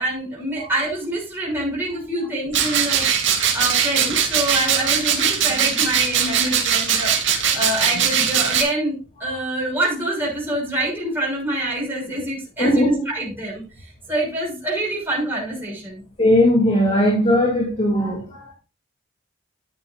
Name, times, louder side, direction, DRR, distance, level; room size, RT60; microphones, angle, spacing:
voice 1, 0.0-3.1 3.5-8.9 9.2-13.6 14.1-16.0, right 1 dB, 10° right, 6.7 m, -26 dB
sound 1, 2.5-8.6, right 8 dB, 70° right, 2.5 m, -20 dB
voice 2, 12.6-13.0 16.2-18.5, equal, 35° left, 2.8 m, -18 dB
13.5 x 9.7 x 2.5 m
head